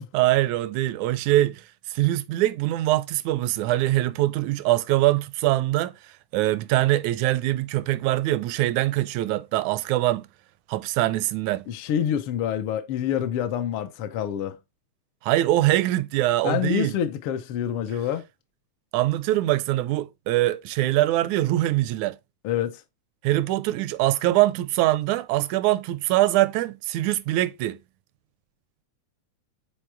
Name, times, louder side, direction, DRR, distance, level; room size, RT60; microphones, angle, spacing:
voice 1, 0.1-1.6 1.9-5.9 6.3-10.3 10.7-11.7 15.2-16.9 18.9-22.2 23.2-27.8, right 15 dB, 80° right, 1.9 m, -23 dB
voice 2, 11.7-14.6 16.4-18.2 22.4-22.8, left 10 dB, 75° left, 1.3 m, -27 dB
7.7 x 4.2 x 3.4 m
omnidirectional pair, 3.4 m